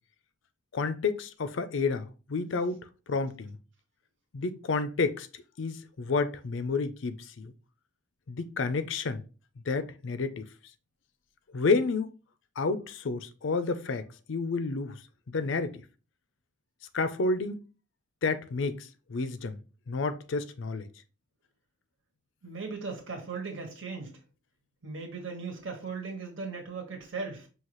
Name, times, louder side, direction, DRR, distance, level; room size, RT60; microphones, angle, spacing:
voice 1, 0.7-3.6 4.3-7.5 8.3-9.2 9.7-10.5 11.5-12.1 12.6-15.0 15.3-15.8 16.9-17.6 18.2-19.6 19.9-20.9, left 4 dB, 70° left, 0.5 m, -30 dB
voice 2, 22.4-24.2 24.8-27.5, right 4 dB, 75° right, 1.5 m, -38 dB
5.6 x 2.8 x 3.0 m
head